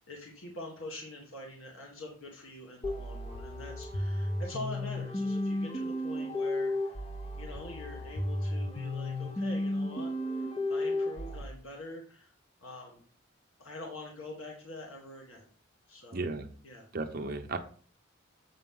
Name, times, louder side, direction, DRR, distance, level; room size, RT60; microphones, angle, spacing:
voice 1, 0.1-7.0 7.3-12.3 12.6-13.0 13.6-15.5 15.9-16.2 16.6-16.9, left 1 dB, 85° left, -1 dB, 1.8 m, -45 dB
sound 1, 2.8-11.4, left 1 dB, 30° left, 0.9 m, -33 dB
voice 2, 16.1-16.5 16.9-17.6, right 3 dB, 45° right, 6 dB, 0.7 m, -34 dB
7.8 x 6.0 x 3.8 m, 0.44 s
head